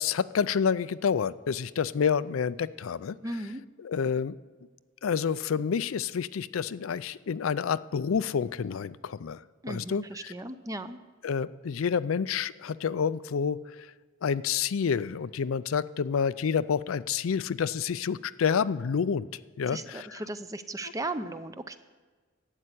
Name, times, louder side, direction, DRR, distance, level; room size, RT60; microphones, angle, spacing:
voice 1, 0.0-3.2 3.8-4.3 5.0-9.4 9.7-10.3 11.2-13.6 14.2-19.3 19.6-20.2, left 6 dB, 80° left, 16 dB, 0.4 m, -28 dB
voice 2, 3.2-3.6 9.6-11.0 19.7-21.8, right 2 dB, 15° right, 11 dB, 0.5 m, -36 dB
12.0 x 8.8 x 8.3 m, 1.4 s
head